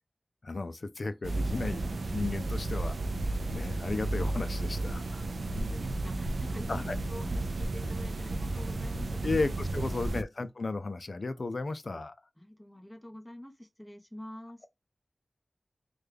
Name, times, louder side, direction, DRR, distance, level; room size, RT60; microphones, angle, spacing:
voice 1, 0.4-3.0 3.5-5.0 6.7-7.0 9.2-12.1, left 3 dB, 60° left, 0.3 m, -34 dB
sound 1, 1.2-10.2, right 2 dB, 85° right, 0.3 m, -33 dB
voice 2, 5.5-9.4 12.4-14.7, left 1 dB, 10° left, 0.8 m, -46 dB
3.2 x 2.2 x 3.4 m
wide cardioid pair, 65°, 0 cm